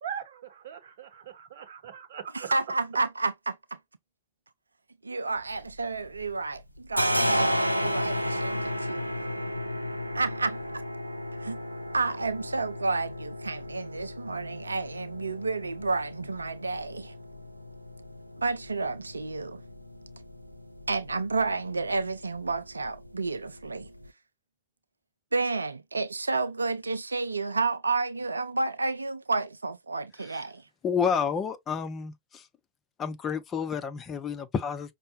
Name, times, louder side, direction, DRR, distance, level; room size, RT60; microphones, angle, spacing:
voice 1, 0.0-2.6, right 8 dB, 60° right, 0.8 m, -40 dB
voice 2, 2.3-3.8 5.0-9.1 10.1-10.8 11.4-11.6 11.9-17.2 18.4-19.6 20.9-23.9 25.3-30.6, right 3 dB, 80° right, 0.3 m, -31 dB
sound 1, 5.4-6.3 6.6-24.1, equal, 90° left, 0.4 m, -34 dB
voice 3, 30.8-32.5 33.0-34.9, left 6 dB, 25° left, 0.6 m, -30 dB
5.4 x 2.1 x 3.0 m
figure-of-eight pair, 90°, 0 cm